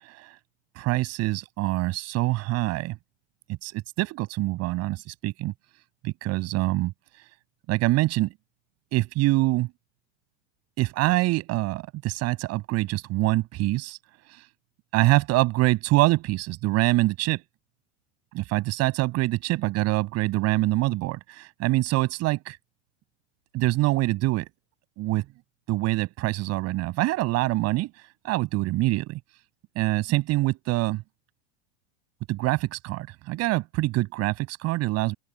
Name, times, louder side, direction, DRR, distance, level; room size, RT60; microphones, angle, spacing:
voice 1, 0.8-3.0 3.6-5.5 6.0-6.9 7.7-8.3 8.9-9.7 10.8-14.0 14.9-17.4 18.3-22.6 23.5-24.5 25.0-25.2 25.7-27.9 28.2-29.2 29.7-31.0 32.3-35.1, right 19 dB, 45° right, 8.0 m, -25 dB
open air
supercardioid pair, 135°, 34 cm